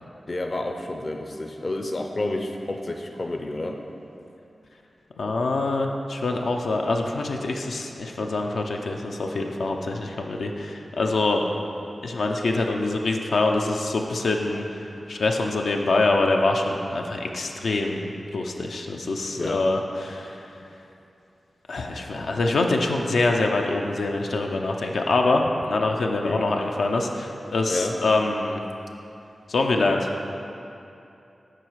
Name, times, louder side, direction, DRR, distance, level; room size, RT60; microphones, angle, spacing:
voice 1, 0.3-3.8 19.3-19.6 26.2-26.4 27.7-28.0, left 2 dB, 40° left, 3 dB, 0.5 m, -30 dB
voice 2, 5.2-11.5 12.0-20.5 21.7-28.6 29.5-30.1, left 2 dB, 85° left, 2 dB, 0.6 m, -25 dB
7.6 x 4.9 x 6.3 m, 2.8 s
wide cardioid pair, 125°, 0 cm